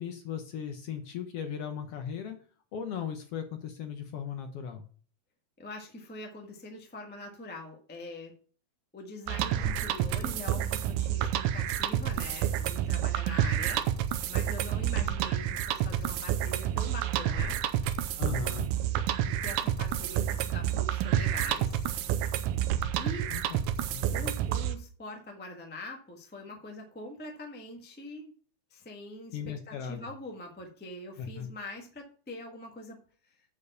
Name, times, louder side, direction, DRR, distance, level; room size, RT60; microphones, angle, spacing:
voice 1, 0.0-2.4 2.7-4.8 18.2-18.7 23.3-23.6 23.9-24.3 29.3-30.1 31.2-31.5, left 7 dB, 65° left, 6 dB, 1.6 m, -37 dB
voice 2, 5.6-8.3 8.9-13.8 14.3-17.6 19.2-21.8 22.9-23.3 24.1-28.3 28.7-29.4 29.7-33.0, left 2 dB, 15° left, 1 dB, 0.3 m, -43 dB
sound 1, 9.3-24.8, right 10 dB, 90° right, 2.1 m, -29 dB
8.5 x 4.6 x 6.8 m, 0.43 s
omnidirectional pair, 3.5 m